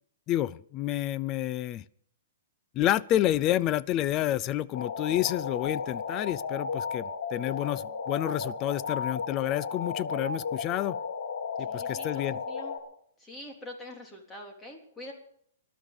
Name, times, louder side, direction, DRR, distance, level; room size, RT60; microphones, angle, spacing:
voice 1, 0.3-1.8 2.7-11.0 11.6-12.4, left 13 dB, 25° left, 19 dB, 0.5 m, -29 dB
sound 1, 4.7-12.8, left 5 dB, 75° left, 3.5 m, -34 dB
voice 2, 11.7-12.7 13.2-15.1, left 1 dB, 10° left, 1 dB, 3.5 m, -45 dB
20.0 x 12.5 x 5.2 m, 0.65 s
hypercardioid pair, 155°, 0 cm